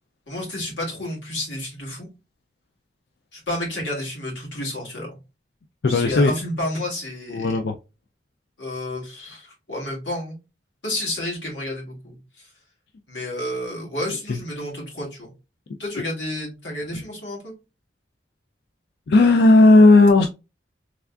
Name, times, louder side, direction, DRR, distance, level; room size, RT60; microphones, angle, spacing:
voice 1, 0.3-2.1 3.3-5.1 5.9-7.6 8.6-10.4 10.8-12.5 13.1-15.3 15.8-17.5, left 1 dB, 90° left, 2.1 m, -30 dB
voice 2, 5.8-6.3 7.3-7.7 14.3-14.4 16.9-17.0 19.1-20.3, left 2 dB, 60° left, 0.4 m, -14 dB
3.4 x 3.4 x 2.3 m
head